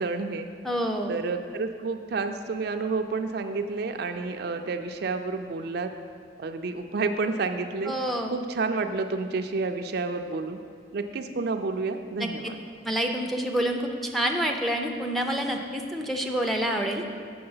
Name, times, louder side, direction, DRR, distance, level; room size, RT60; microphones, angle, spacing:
voice 1, 0.0-0.5 1.1-5.9 6.4-7.9 8.3-10.6 10.9-12.6, right 3 dB, 55° right, 6 dB, 0.4 m, -30 dB
voice 2, 0.6-1.2 7.9-8.3 12.2-12.3 12.8-17.0, equal, ahead, 1 dB, 0.5 m, -27 dB
7.7 x 5.9 x 5.5 m, 2.2 s
head